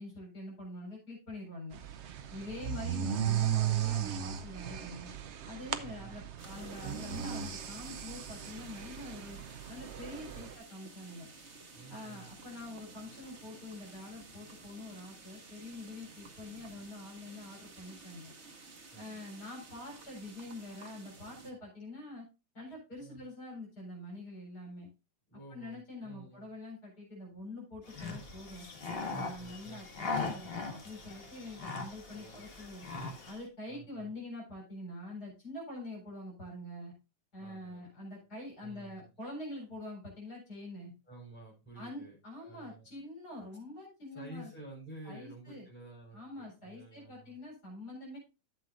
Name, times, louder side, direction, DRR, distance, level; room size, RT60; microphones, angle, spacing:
voice 1, 0.0-1.8 2.3-5.1 5.4-9.4 9.7-11.3 11.9-18.3 19.0-22.2 22.5-24.9 25.5-28.7 29.0-32.9 33.2-36.9 37.3-40.9 41.7-44.5 45.0-45.7 46.1-48.2, left 2 dB, 60° left, -2 dB, 4.8 m, -45 dB
sound 1, 1.7-10.5, right 10 dB, 60° right, 0.7 m, -36 dB
voice 2, 2.4-2.8 5.8-6.1 10.3-10.6 11.7-12.3 18.9-19.2 23.0-23.2 25.3-26.5 29.4-29.8 32.1-32.5 33.7-34.1 37.4-37.8 38.6-39.1 41.1-42.9 44.1-47.4, right 2 dB, 5° left, -4 dB, 5.1 m, -51 dB
sound 2, 6.4-21.5, right 3 dB, 40° right, 1.7 m, -53 dB
sound 3, 27.9-33.4, left 4 dB, 35° left, 1.5 m, -40 dB
12.0 x 7.7 x 2.5 m, 0.29 s
omnidirectional pair, 2.0 m